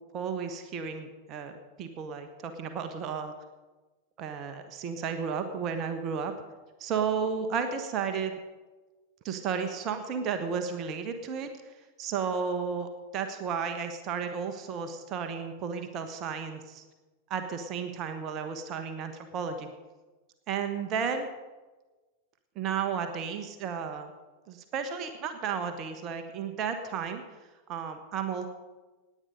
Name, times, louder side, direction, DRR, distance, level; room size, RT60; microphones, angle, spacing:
voice 1, 0.1-3.3 4.2-6.3 6.8-8.4 9.2-11.5 12.0-16.8 17.3-19.7 20.5-21.3 22.5-24.1 24.5-27.2 27.7-28.5, right 6 dB, 35° right, 7 dB, 1.3 m, -33 dB
17.5 x 9.7 x 5.3 m, 1.2 s
figure-of-eight pair, 90°, 0 cm